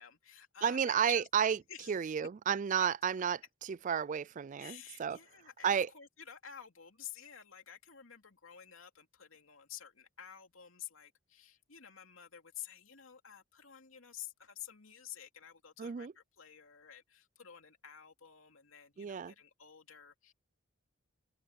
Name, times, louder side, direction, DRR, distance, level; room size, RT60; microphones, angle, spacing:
voice 1, 0.0-1.3 1.7-2.1 2.8-2.9 4.6-20.3, left 10 dB, 85° left, 2.8 m, -51 dB
voice 2, 0.6-1.6 1.9-3.4 3.9-5.2 5.6-5.9 15.8-16.1 19.0-19.3, right 8 dB, 40° right, 0.3 m, -31 dB
head